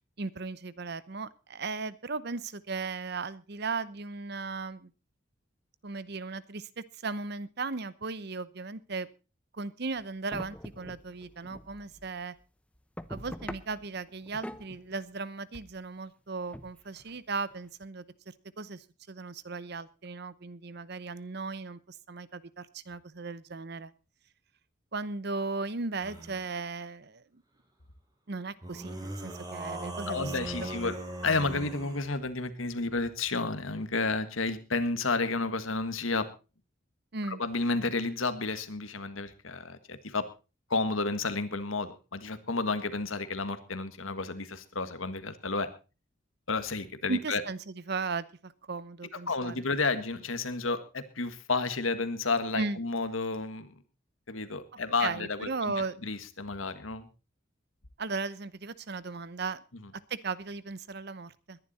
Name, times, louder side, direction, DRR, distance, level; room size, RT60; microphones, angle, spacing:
voice 1, 0.2-4.9 5.8-9.1 9.5-12.3 13.1-23.9 24.9-27.4 28.3-30.7 37.1-37.4 47.1-49.7 52.5-52.8 55.0-56.0 58.0-59.6 60.1-61.6, right 4 dB, 55° right, 17 dB, 0.8 m, -37 dB
sound 1, 10.0-10.1 10.3-12.4 12.7-15.1 15.5-15.8 16.5-17.8, equal, 5° left, 0.8 m, -44 dB
sound 2, 26.0-26.5 28.6-32.1, right 1 dB, 20° right, 3.3 m, -39 dB
voice 2, 30.1-31.0 31.2-36.3 37.3-40.2 40.7-45.7 46.5-47.4 49.3-53.7 54.3-55.5 56.0-57.1, left 3 dB, 90° left, 11 dB, 1.7 m, -31 dB
20.5 x 11.0 x 4.2 m, 0.33 s
head